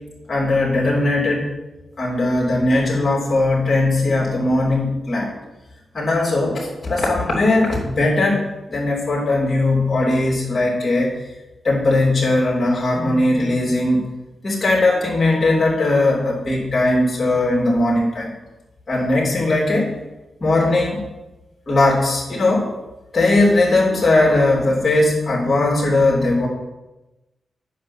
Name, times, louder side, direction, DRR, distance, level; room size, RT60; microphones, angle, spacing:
voice 1, 0.3-1.5 2.0-5.3 5.9-8.4 8.7-11.1 11.6-14.0 14.4-18.3 18.9-19.9 20.4-21.0 21.7-22.7 23.1-26.5, left 2 dB, 40° left, -4 dB, 3.5 m, -18 dB
8.6 x 5.8 x 7.6 m, 1.0 s
cardioid pair, 70°, 0 cm